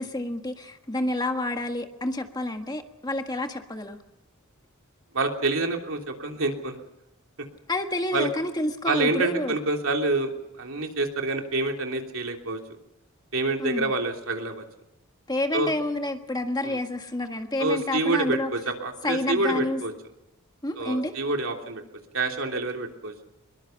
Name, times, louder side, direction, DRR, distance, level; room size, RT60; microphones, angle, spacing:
voice 1, 0.0-4.0 7.7-9.5 13.6-13.9 15.3-18.5 19.0-19.8 20.6-21.1, left 1 dB, 20° left, 5 dB, 1.6 m, -29 dB
voice 2, 5.1-6.8 8.1-8.3 8.8-12.6 13.3-14.6 15.5-15.7 16.6-16.8 17.6-19.9 20.8-21.8 22.1-23.1, right 2 dB, 65° right, 2 dB, 3.3 m, -27 dB
24.5 x 22.5 x 5.9 m, 0.86 s
head